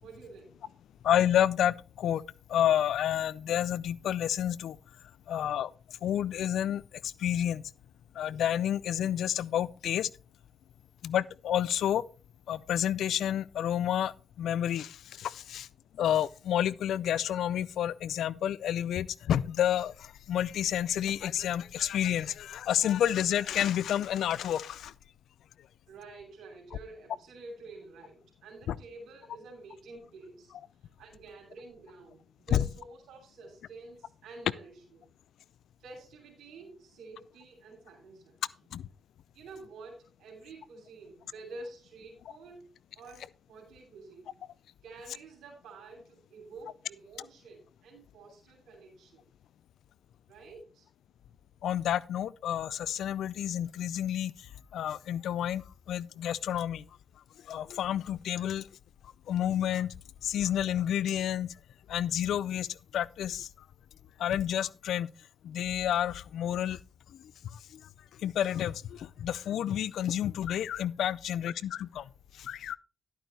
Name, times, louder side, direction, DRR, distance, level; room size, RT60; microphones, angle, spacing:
voice 1, 0.0-0.6 25.9-30.5 31.0-35.0 35.8-38.4 39.3-42.7 42.9-44.3 44.8-49.2 50.3-50.9, right 3 dB, 80° right, 3.1 m, -49 dB
voice 2, 1.0-2.2 2.5-4.8 5.3-5.7 6.0-6.8 7.2-7.6 8.2-10.1 11.0-12.0 12.5-14.1 14.4-15.7 16.0-24.9 28.7-28.8 32.5-32.6 38.7-38.9 51.6-54.3 54.7-55.6 55.9-56.8 57.5-58.7 59.3-59.9 60.2-61.5 61.9-62.7 62.9-63.5 64.2-65.1 65.4-66.8 68.2-72.0 72.4-72.8, left 10 dB, 80° left, 0.4 m, -29 dB
11.5 x 9.1 x 3.3 m
supercardioid pair, 45°, 0 cm